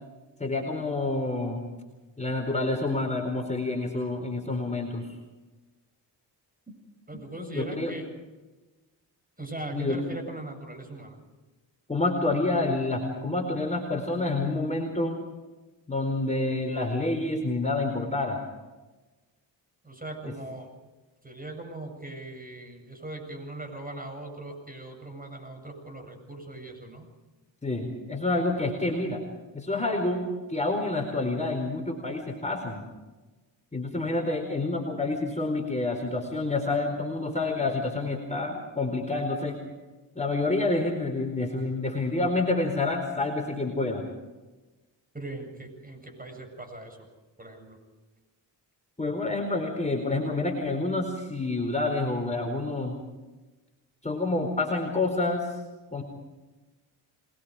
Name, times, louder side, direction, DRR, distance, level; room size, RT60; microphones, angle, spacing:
voice 1, 0.4-1.6 2.2-5.1 7.5-7.9 9.7-10.0 11.9-15.2 15.9-18.4 27.6-29.2 29.5-32.9 33.7-39.6 40.1-44.1 49.0-53.0 54.0-55.5 55.9-56.0, left 2 dB, 15° left, 2 dB, 4.6 m, -28 dB
voice 2, 7.1-8.1 9.4-11.2 19.8-20.7 21.2-27.1 31.2-31.5 45.1-47.1 47.4-47.8, right 2 dB, 20° right, 4 dB, 7.9 m, -40 dB
27.5 x 21.5 x 5.0 m, 1.2 s
cardioid pair, 70°, 46 cm